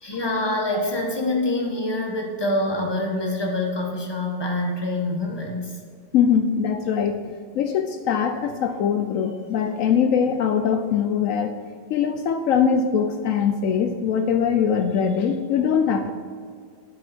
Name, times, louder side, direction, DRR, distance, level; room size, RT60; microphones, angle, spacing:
voice 1, 0.0-5.8, left 1 dB, 15° left, 0 dB, 1.2 m, -25 dB
voice 2, 6.1-11.6 11.9-16.1, left 7 dB, 85° left, 7 dB, 0.7 m, -22 dB
12.0 x 7.4 x 4.4 m, 2.1 s
omnidirectional pair, 2.1 m